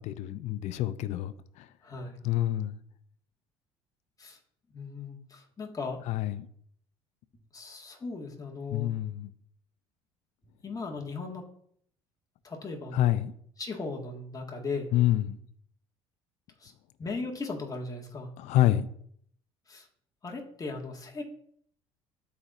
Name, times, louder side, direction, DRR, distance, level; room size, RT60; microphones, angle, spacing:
voice 1, 0.0-1.7 2.2-2.8 6.1-6.5 8.7-9.3 12.9-13.3 14.9-15.4 18.4-18.9, left 14 dB, 60° left, 0.5 m, -27 dB
voice 2, 1.8-2.2 4.2-4.4 4.7-6.1 7.5-9.0 10.6-11.5 12.4-13.2 13.6-14.9 16.6-16.7 17.0-18.3 19.7-19.9 20.2-21.2, left 3 dB, 25° left, 1.8 m, -37 dB
12.5 x 4.3 x 2.6 m
hypercardioid pair, 65°, 13 cm